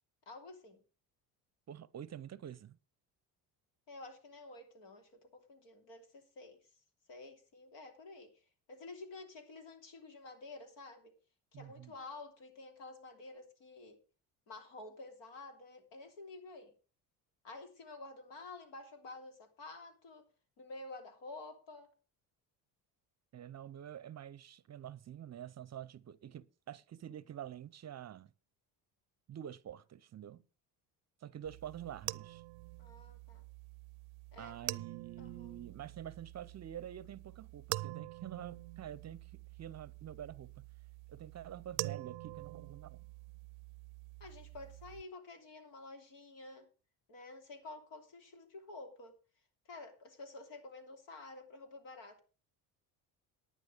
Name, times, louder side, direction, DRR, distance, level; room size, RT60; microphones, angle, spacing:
voice 1, 0.3-0.8 3.9-6.6 7.1-8.3 8.7-11.1 11.5-14.0 14.5-16.7 17.4-20.3 20.6-21.9 32.8-33.4 34.3-34.7 35.2-35.6 44.2-46.7 47.1-49.1 49.7-52.2, left 3 dB, 70° left, 3.0 m, -50 dB
voice 2, 1.7-2.8 11.5-11.9 23.3-28.3 29.3-30.4 31.2-32.4 34.4-40.6 41.1-43.0, right 10 dB, 35° right, 0.6 m, -47 dB
sound 1, 31.4-45.0, right 23 dB, 85° right, 0.6 m, -46 dB
11.0 x 9.3 x 5.1 m
supercardioid pair, 75°, 45 cm